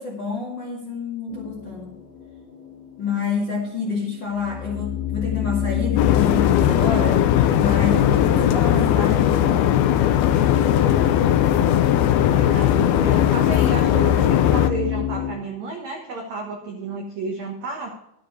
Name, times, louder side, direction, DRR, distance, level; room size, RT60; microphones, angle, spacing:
voice 1, 0.0-1.9 3.0-7.2 7.6-9.7, left 5 dB, 40° left, -2 dB, 1.8 m, -28 dB
sound 1, 1.3-3.1 3.6-3.8 4.1-11.8 12.2-15.3, left 11 dB, 20° left, 1.6 m, -29 dB
sound 2, 6.0-14.7, left 11 dB, 85° left, 2.3 m, -18 dB
voice 2, 12.3-17.9, right 3 dB, 80° right, 1 dB, 1.5 m, -32 dB
12.0 x 9.3 x 4.7 m, 0.83 s
omnidirectional pair, 5.3 m